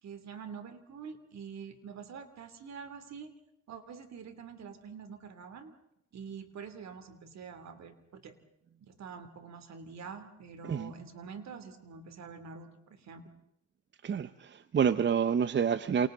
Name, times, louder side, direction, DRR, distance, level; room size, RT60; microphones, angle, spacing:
voice 1, 0.0-3.3 3.7-5.7 6.1-8.4 8.8-13.2, right 6 dB, 60° right, 3.0 m, -46 dB
voice 2, 14.0-16.1, right 7 dB, 40° right, 0.8 m, -28 dB
28.5 x 28.0 x 3.9 m
cardioid pair, 90°, 30 cm